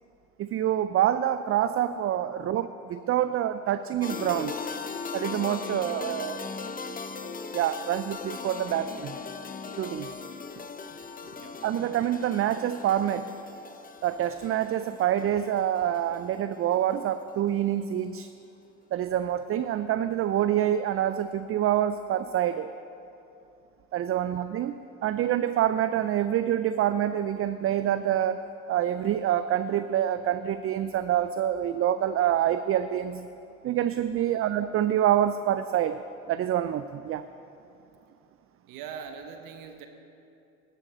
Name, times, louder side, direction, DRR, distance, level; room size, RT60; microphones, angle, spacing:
voice 1, 0.4-4.5 5.1-6.5 7.2-9.2 9.8-10.1 11.6-13.3 14.0-18.3 18.9-22.7 23.9-33.3 33.6-36.0 36.3-37.2, right 11 dB, 40° right, 12 dB, 0.4 m, -26 dB
sound 1, 4.0-16.9, left 5 dB, 25° left, 0.7 m, -38 dB
voice 2, 38.7-39.9, right 7 dB, 70° right, 5 dB, 0.9 m, -41 dB
11.0 x 8.0 x 6.1 m, 2.8 s
hypercardioid pair, 55°, 34 cm